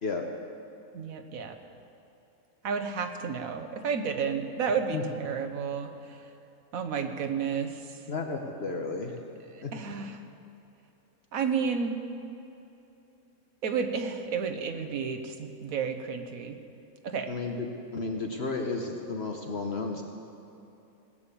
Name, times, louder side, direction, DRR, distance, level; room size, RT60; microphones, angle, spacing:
voice 1, 0.9-1.6 2.6-6.3 6.7-8.0 9.5-10.2 11.3-12.0 13.6-16.6 17.0-17.3, right 6 dB, 75° right, 6 dB, 1.4 m, -31 dB
voice 2, 8.1-9.2 9.6-9.9 17.3-20.0, left 3 dB, 50° left, 2 dB, 1.1 m, -33 dB
18.0 x 8.8 x 7.0 m, 2.8 s
omnidirectional pair, 1.5 m